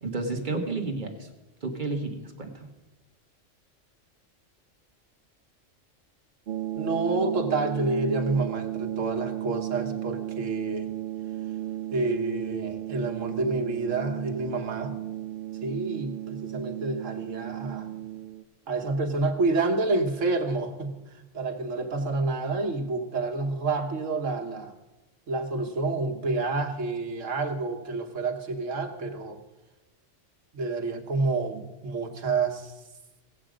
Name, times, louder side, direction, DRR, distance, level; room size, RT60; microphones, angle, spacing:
voice 1, 0.0-1.3 1.6-2.7, right 3 dB, 40° right, 4 dB, 1.4 m, -31 dB
sound 1, 6.5-18.4, right 13 dB, 60° right, 0.6 m, -34 dB
voice 2, 6.8-10.9 11.9-14.9 15.6-17.9 18.7-24.8 25.3-29.4 30.5-32.7, right 3 dB, 80° right, 5 dB, 1.5 m, -29 dB
17.5 x 7.7 x 5.0 m, 1.1 s
omnidirectional pair, 1.3 m